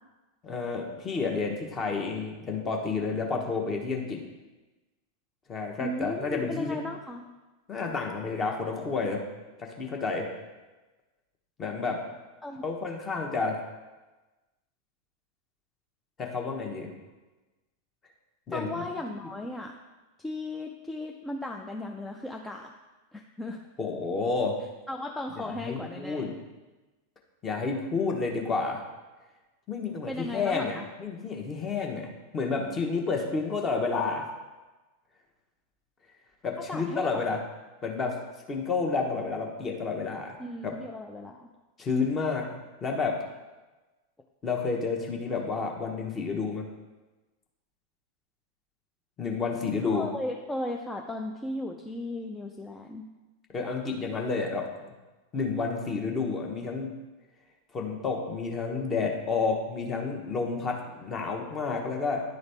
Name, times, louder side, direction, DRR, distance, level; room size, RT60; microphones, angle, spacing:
voice 1, 0.4-4.2 5.5-6.8 7.7-9.2 9.6-10.3 11.6-12.0 12.6-13.6 16.2-16.9 18.5-18.8 23.8-24.6 25.4-26.3 27.4-28.8 29.7-34.2 36.4-37.4 37.8-38.2 38.5-40.3 40.6-40.7 41.8-42.5 42.8-43.2 44.4-46.7 49.2-50.1 53.5-54.9 55.3-56.9 57.7-62.2, left 4 dB, 25° left, 1 dB, 1.1 m, -30 dB
voice 2, 5.8-7.3 12.4-12.6 18.5-19.7 20.2-22.7 23.1-23.6 24.9-26.3 30.1-30.8 36.7-37.4 40.4-41.5 49.9-53.1, left 1 dB, 10° left, 1 dB, 0.4 m, -36 dB
10.5 x 4.0 x 3.4 m, 1.2 s
figure-of-eight pair, 90°, 0 cm